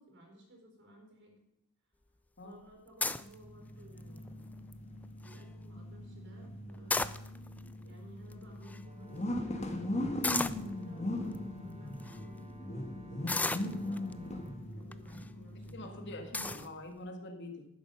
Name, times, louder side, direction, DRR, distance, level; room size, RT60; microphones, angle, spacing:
voice 1, 0.0-1.4 2.4-4.5 5.2-7.1 7.8-15.9, right 1 dB, 60° right, 1 dB, 4.4 m, -57 dB
sound 1, 3.0-3.3 4.0-4.3 4.7-4.8 5.0-5.4 6.7-7.6 8.3-8.4 8.6-8.8 10.2-10.7 11.3-11.4 12.0-12.2 13.3-14.1 14.9-15.2 15.7-15.8 16.3-16.7, left 3 dB, 5° left, 0.3 m, -33 dB
sound 2, 3.2-16.6, left 1 dB, 30° left, 1.4 m, -40 dB
Brass instrument, 8.8-14.7, right 1 dB, 30° right, 1.5 m, -60 dB
voice 2, 15.7-17.7, left 1 dB, 55° left, 6 dB, 1.8 m, -45 dB
11.5 x 9.6 x 5.5 m, 0.86 s
head